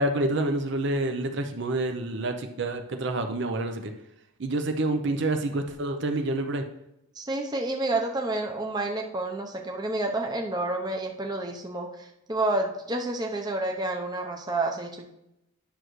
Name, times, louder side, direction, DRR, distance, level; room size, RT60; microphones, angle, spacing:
voice 1, 0.0-3.9 4.4-6.6, right 2 dB, 60° right, 6 dB, 0.6 m, -28 dB
voice 2, 7.2-15.1, right 2 dB, 20° right, 2 dB, 0.7 m, -29 dB
10.0 x 6.3 x 3.1 m, 0.84 s
head